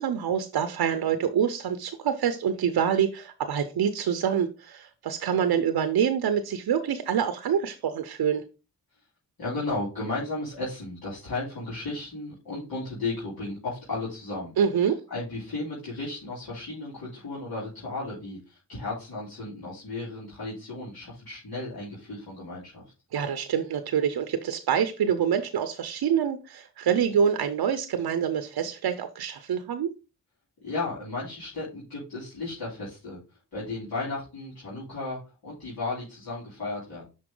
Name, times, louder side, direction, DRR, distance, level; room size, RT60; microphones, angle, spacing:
voice 1, 0.0-8.4 14.6-15.0 23.1-29.9, right 8 dB, 80° right, 9 dB, 0.7 m, -26 dB
voice 2, 9.4-14.5 14.8-22.8 30.6-33.2 33.5-37.0, left 2 dB, 75° left, -9 dB, 3.3 m, -34 dB
6.0 x 4.2 x 3.7 m, 0.31 s
cardioid pair, 45°, 38 cm